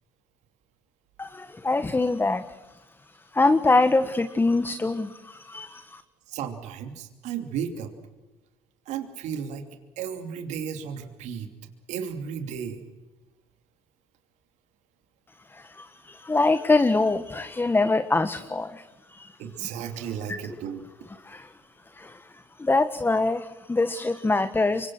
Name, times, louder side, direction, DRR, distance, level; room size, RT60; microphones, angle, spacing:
voice 1, 1.2-6.0 15.5-19.7 20.0-20.4 21.1-21.6 21.8-24.9, left 3 dB, 15° left, 10 dB, 1.6 m, -25 dB
voice 2, 6.3-7.9 8.9-9.6 10.0-11.5 11.9-12.8 19.4-20.8, right 8 dB, 65° right, 6 dB, 3.0 m, -34 dB
28.5 x 25.0 x 6.3 m, 1.1 s
hypercardioid pair, 70°, 13 cm